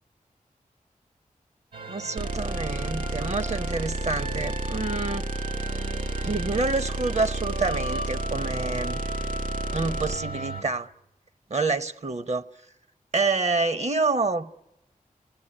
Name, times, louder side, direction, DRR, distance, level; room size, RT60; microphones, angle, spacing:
sound 1, 1.7-10.6, right 2 dB, 80° right, 2.6 m, -36 dB
voice 1, 1.8-5.3 6.2-9.0 9.7-10.9 11.5-12.4 13.1-14.6, right 3 dB, 50° right, 1.0 m, -27 dB
sound 2, 2.2-10.2, right 2 dB, 65° right, 2.7 m, -31 dB
27.5 x 19.0 x 10.0 m
cardioid pair, 45°, 15 cm